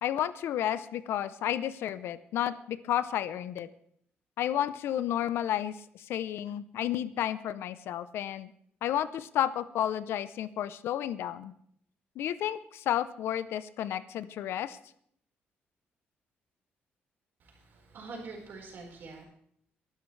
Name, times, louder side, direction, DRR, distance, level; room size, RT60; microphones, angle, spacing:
voice 1, 0.0-3.7 4.4-8.5 8.8-11.5 12.2-14.8, left 11 dB, 85° left, 15 dB, 0.7 m, -32 dB
voice 2, 17.4-19.3, right 3 dB, 60° right, -1 dB, 4.6 m, -45 dB
24.0 x 12.5 x 3.3 m, 0.67 s
cardioid pair, 130°, 4 cm